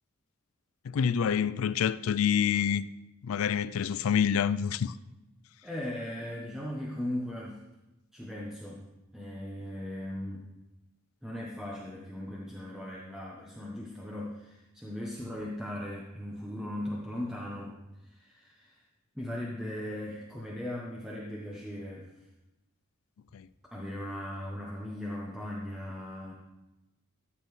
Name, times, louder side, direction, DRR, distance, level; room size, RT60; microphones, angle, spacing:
voice 1, 0.8-2.9 3.2-4.9 23.3-23.5, left 8 dB, 85° left, 0.4 m, -27 dB
voice 2, 5.6-7.6 8.1-8.8 9.1-10.5 11.2-18.8 19.1-22.1 23.7-26.3, left 1 dB, ahead, 1.0 m, -38 dB
13.5 x 7.5 x 3.2 m
head